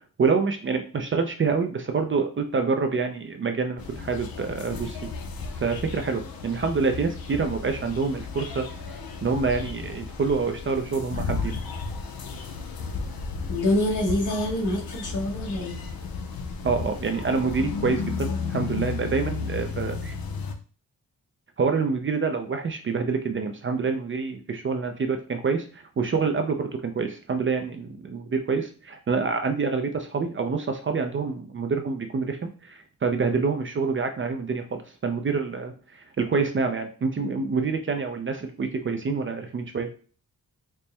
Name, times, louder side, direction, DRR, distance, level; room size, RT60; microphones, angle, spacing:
voice 1, 0.2-5.0 5.6-8.7 9.2-11.6 16.6-20.2 21.6-35.7 36.2-39.9, right 4 dB, 35° right, 5 dB, 0.4 m, -27 dB
sound 1, 3.8-20.5, left 5 dB, 85° left, 0.6 m, -34 dB
voice 2, 13.5-15.8, left 1 dB, 60° left, 0 dB, 1.1 m, -26 dB
4.3 x 2.1 x 3.3 m, 0.38 s
wide cardioid pair, 155°, 35 cm